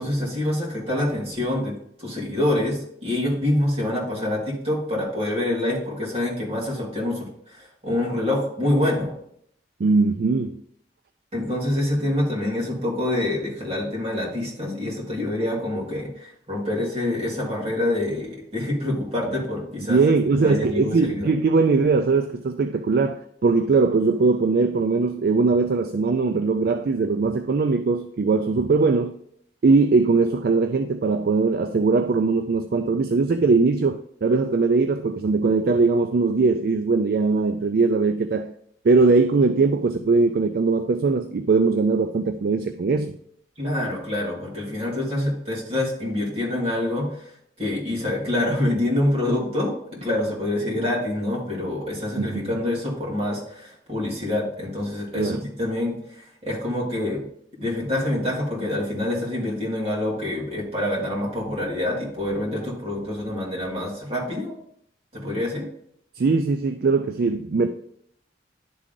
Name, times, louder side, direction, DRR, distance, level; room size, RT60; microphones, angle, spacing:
voice 1, 0.0-1.7 2.0-9.1 11.3-20.1 20.4-21.3 43.6-47.3 47.6-57.2 57.6-64.5 65.1-65.7, left 1 dB, 35° right, 2.3 m, -26 dB
voice 2, 9.8-10.6 19.9-29.1 29.6-38.5 38.8-43.2 52.2-52.4 55.1-55.4 66.2-67.7, right 4 dB, 55° right, 0.4 m, -20 dB
11.0 x 3.7 x 3.7 m
head